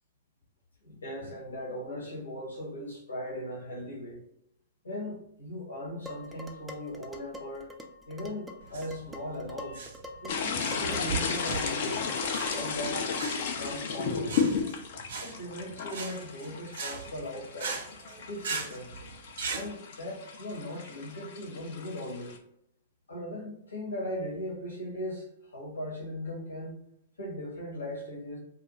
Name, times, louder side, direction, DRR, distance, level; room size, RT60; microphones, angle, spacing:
voice 1, 0.8-4.2 4.8-7.7 8.1-9.8 10.2-12.0 12.5-13.1 13.6-14.6 15.2-17.8 18.3-18.9 19.5-22.3 23.1-26.8 27.2-28.4, left 1 dB, 90° left, -3 dB, 1.0 m, -38 dB
Dishes pots and pans, 6.1-12.9, left 1 dB, 10° right, 0.4 m, -45 dB
sound 1, 8.6-19.7, right 5 dB, 70° right, 0.6 m, -39 dB
sound 2, 10.3-22.4, left 5 dB, 60° left, 0.5 m, -34 dB
2.4 x 2.2 x 2.9 m, 0.79 s
hypercardioid pair, 120°, 0 cm